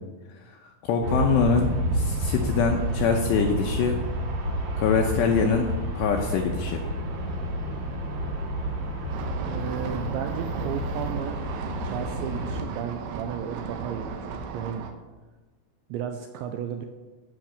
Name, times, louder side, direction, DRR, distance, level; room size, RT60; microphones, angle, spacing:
voice 1, 0.8-4.0 4.8-5.7 6.0-6.8, left 5 dB, 80° left, 2 dB, 2.5 m, -24 dB
Aircraft, 1.0-12.6, equal, 55° right, 3.2 m, -30 dB
sound 1, 9.1-14.9, right 5 dB, 75° right, 2.8 m, -36 dB
voice 2, 9.4-11.4 11.8-14.8 15.9-16.9, right 8 dB, 90° right, 6 dB, 2.6 m, -34 dB
15.0 x 6.1 x 6.6 m, 1.2 s
omnidirectional pair, 5.9 m